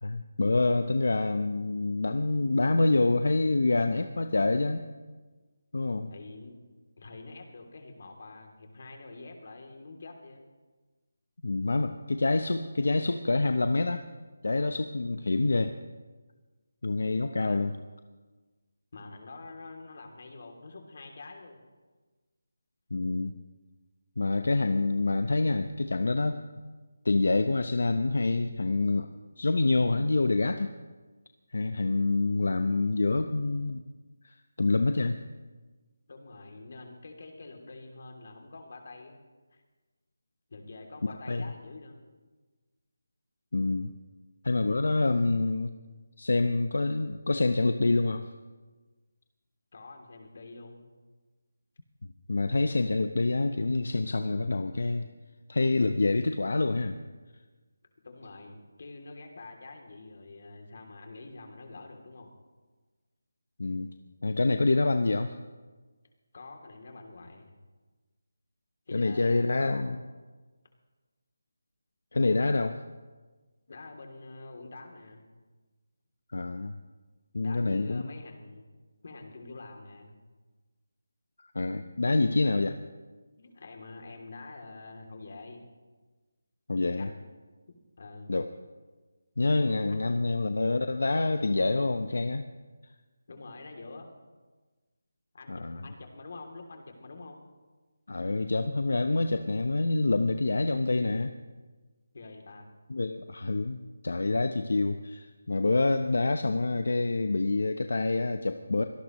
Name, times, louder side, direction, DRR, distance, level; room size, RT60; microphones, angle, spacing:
voice 1, 0.0-4.9 5.7-6.1 11.4-14.1 14.4-15.7 16.8-17.7 22.9-23.4 24.2-26.4 27.0-29.1 29.4-30.7 31.5-33.8 34.2-35.2 41.0-41.5 43.5-43.9 44.4-45.7 46.2-48.3 52.3-55.1 55.5-57.0 63.6-63.9 64.2-65.3 68.9-70.0 72.1-72.8 76.3-76.7 77.3-78.0 81.4-82.8 86.7-87.1 88.3-88.5 89.4-92.5 95.5-95.8 98.1-101.3 102.9-108.8, left 2 dB, 70° left, 8 dB, 0.8 m, -27 dB
voice 2, 6.1-6.6 7.0-10.4 17.4-17.6 18.9-21.6 32.3-32.4 36.1-39.2 39.5-39.6 40.5-42.0 49.7-50.9 58.0-62.3 66.3-67.5 68.9-70.0 73.7-75.3 77.3-78.7 79.0-80.2 83.4-85.6 86.8-87.3 87.7-88.3 89.9-90.3 93.3-94.1 95.3-97.4 102.1-102.7, left 3 dB, 45° left, 3 dB, 2.9 m, -46 dB
24.5 x 18.0 x 3.1 m, 1.3 s
figure-of-eight pair, 175°, 0 cm